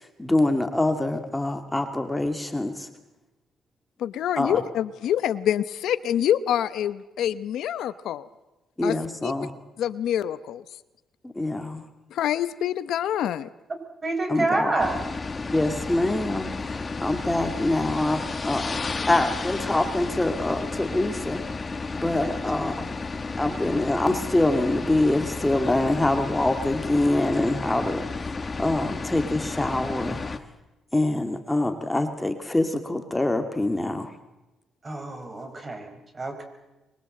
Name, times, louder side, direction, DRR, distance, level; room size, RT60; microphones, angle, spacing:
voice 1, 0.2-2.9 4.4-4.6 8.8-9.5 11.2-11.8 14.3-14.7 15.5-21.4 21.9-22.9 23.4-28.0 28.6-30.2 30.9-34.1, left 2 dB, 10° left, 6 dB, 2.1 m, -25 dB
voice 2, 4.0-8.3 8.8-9.0 9.2-9.3 9.8-10.6 12.1-13.5, left 10 dB, 80° left, 14 dB, 0.9 m, -26 dB
voice 3, 14.0-15.2 22.2-22.4 34.8-36.4, right 2 dB, 30° right, 6 dB, 5.1 m, -28 dB
sound 1, 14.8-30.4, left 4 dB, 30° left, 1.5 m, -32 dB
24.5 x 22.5 x 7.8 m, 1.0 s
cardioid pair, 90°, 0 cm